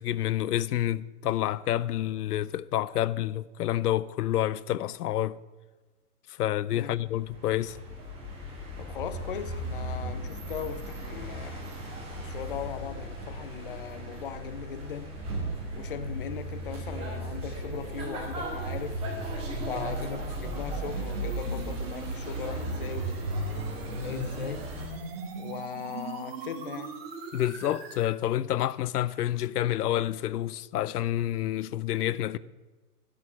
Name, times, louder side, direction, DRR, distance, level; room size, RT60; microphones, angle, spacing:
voice 1, 0.0-5.4 6.3-7.8 27.3-32.4, left 13 dB, 90° left, 0.6 m, -28 dB
sound 1, 6.9-24.9, right 1 dB, 10° right, 2.4 m, -37 dB
voice 2, 8.8-11.7 12.1-15.2 15.7-19.0 19.6-23.4 23.9-24.7 25.4-26.9, left 8 dB, 40° left, 0.4 m, -39 dB
sound 2, 15.9-28.1, right 2 dB, 40° right, 1.7 m, -38 dB
11.0 x 7.0 x 7.1 m
hypercardioid pair, 170°, 45 cm